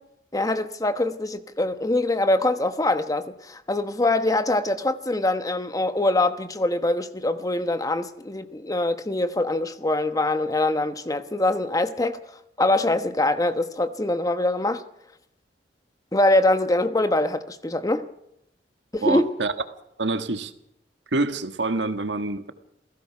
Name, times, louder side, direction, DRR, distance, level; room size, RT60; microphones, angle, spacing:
voice 1, 0.3-12.2 12.6-14.8 16.1-18.1 18.9-19.2, left 2 dB, 20° left, 1.1 m, -23 dB
voice 2, 19.0-19.5 20.0-20.5 21.1-22.5, right 3 dB, 90° right, 1.6 m, -26 dB
28.0 x 16.5 x 6.0 m
head